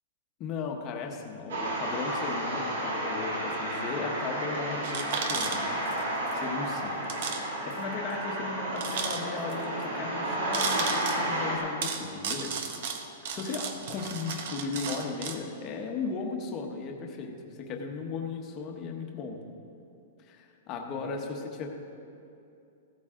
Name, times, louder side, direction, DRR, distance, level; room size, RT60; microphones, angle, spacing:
voice 1, 0.4-6.1 6.3-7.3 7.6-12.6 13.3-19.4 20.2-21.7, left 4 dB, 20° left, 1 dB, 1.1 m, -36 dB
sound 1, 1.5-11.6, right 1 dB, 85° right, 3.5 m, -32 dB
sound 2, 4.8-6.0 6.3-6.4 7.0-7.4 7.7-7.8 8.8-9.5 10.5-11.2 11.8-15.4, right 6 dB, 45° right, 1.0 m, -34 dB
16.0 x 13.5 x 3.7 m, 2.7 s
supercardioid pair, 175°, 0 cm